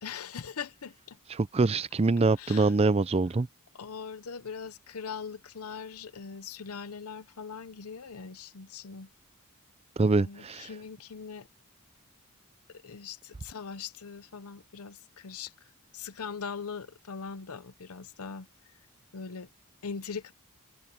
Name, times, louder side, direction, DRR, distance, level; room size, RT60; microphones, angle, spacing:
voice 1, 0.0-1.2 2.4-2.7 3.7-9.1 10.2-11.5 12.7-18.8 19.1-19.5 19.8-20.3, left 6 dB, 80° left, 0.8 m, -41 dB
voice 2, 1.4-3.5 10.0-10.7, right 3 dB, 25° right, 0.4 m, -24 dB
head